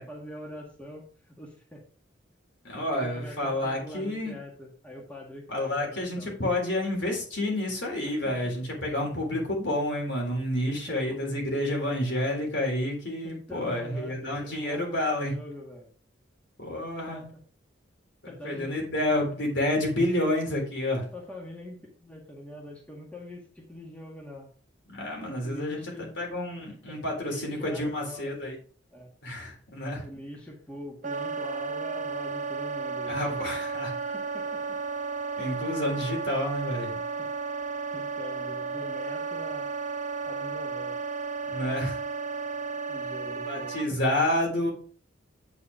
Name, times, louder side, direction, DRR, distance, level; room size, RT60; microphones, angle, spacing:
voice 1, 0.0-1.8 2.8-6.3 8.2-8.3 10.9-11.2 13.2-15.9 17.1-17.2 18.3-18.7 21.1-24.5 25.4-26.1 26.9-28.3 28.9-29.1 30.0-33.2 34.1-34.8 37.9-39.7 40.3-41.0 42.9-43.7, left 1 dB, 5° left, -2 dB, 1.7 m, -43 dB
voice 2, 2.6-4.3 5.5-15.3 16.6-17.3 18.4-21.1 24.9-28.5 29.2-30.1 33.1-33.9 35.4-37.0 41.5-42.0 43.3-44.7, left 1 dB, 65° left, 0 dB, 3.6 m, -29 dB
Wind instrument woodwind instrument, 31.0-43.9, right 4 dB, 40° right, 0.6 m, -33 dB
8.6 x 5.1 x 4.9 m, 0.42 s
head